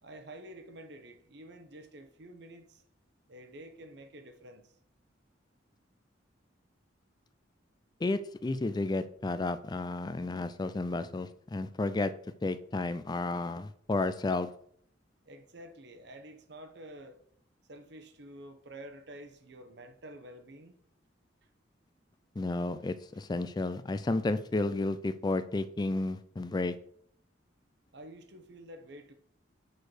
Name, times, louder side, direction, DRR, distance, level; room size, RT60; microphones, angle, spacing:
voice 1, 0.0-2.8 3.3-4.8 15.2-17.2 17.7-20.8 27.9-29.1, right 1 dB, 60° right, 0.9 m, -49 dB
voice 2, 8.0-12.1 12.4-14.5 22.4-26.8, left 2 dB, 20° left, 0.3 m, -32 dB
6.6 x 4.5 x 4.8 m
head